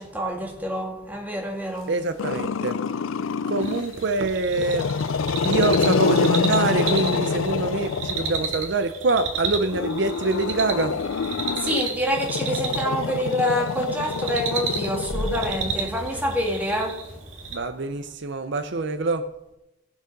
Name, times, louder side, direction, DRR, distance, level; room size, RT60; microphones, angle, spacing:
voice 1, 0.0-1.9 11.6-17.0, equal, 10° right, 1.8 m, -26 dB
voice 2, 1.9-2.8 3.5-4.9 5.4-11.0 17.5-19.3, right 3 dB, 55° right, 0.6 m, -25 dB
Growling, 2.2-3.9 4.5-8.6 9.6-16.1, left 5 dB, 75° left, 0.4 m, -26 dB
sound 1, 3.6-17.6, right 4 dB, 70° right, 2.0 m, -33 dB
18.5 x 6.5 x 5.2 m
head